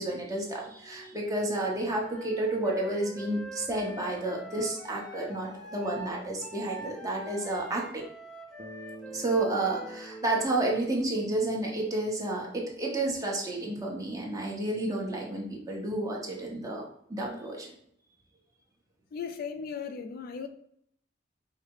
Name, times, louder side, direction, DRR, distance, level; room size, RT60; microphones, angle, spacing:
voice 1, 0.0-8.0 9.1-16.8 17.1-17.7, right 2 dB, 20° right, -2 dB, 1.0 m, -31 dB
Wind instrument woodwind instrument, 2.0-10.6, right 1 dB, ahead, 0.7 m, -45 dB
Bass guitar, 8.6-12.8, right 4 dB, 35° right, 0.5 m, -49 dB
voice 2, 19.1-20.5, left 6 dB, 50° left, 8 dB, 0.3 m, -37 dB
4.8 x 2.1 x 4.6 m, 0.68 s
head